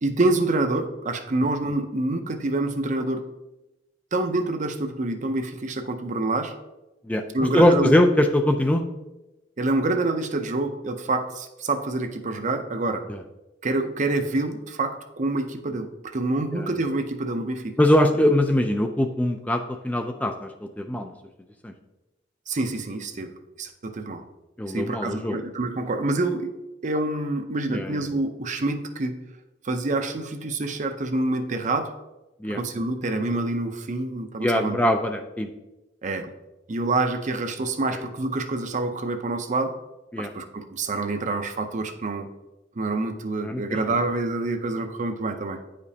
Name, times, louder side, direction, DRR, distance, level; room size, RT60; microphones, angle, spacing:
voice 1, 0.0-3.2 4.1-6.5 7.3-7.9 9.6-13.0 13.6-17.7 22.5-23.3 23.6-24.2 24.7-26.5 26.8-29.2 29.6-31.9 32.5-34.8 36.0-36.3 36.7-39.7 40.2-42.3 42.8-45.6, right 2 dB, 40° right, 7 dB, 0.6 m, -27 dB
voice 2, 7.5-8.8 13.1-13.2 16.5-16.7 17.8-21.1 21.6-21.7 24.6-25.4 27.7-28.0 32.4-32.6 34.4-35.5 37.9-38.0 40.1-40.3 43.4-43.6, left 1 dB, 10° left, 5 dB, 0.3 m, -22 dB
9.2 x 5.1 x 2.8 m, 1.0 s
head